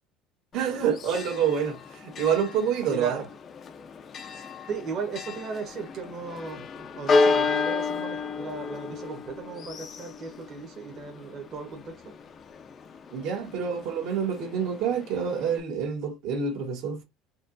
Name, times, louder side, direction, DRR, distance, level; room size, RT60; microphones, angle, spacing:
Church bell, 0.5-15.6, left 4 dB, 30° left, 0.4 m, -32 dB
voice 1, 0.5-3.2 13.1-17.0, right 7 dB, 60° right, 1.4 m, -27 dB
voice 2, 2.9-3.3 4.3-12.1, right 5 dB, 40° right, 1.1 m, -37 dB
4.3 x 2.9 x 2.6 m
cardioid pair, 155°, 0 cm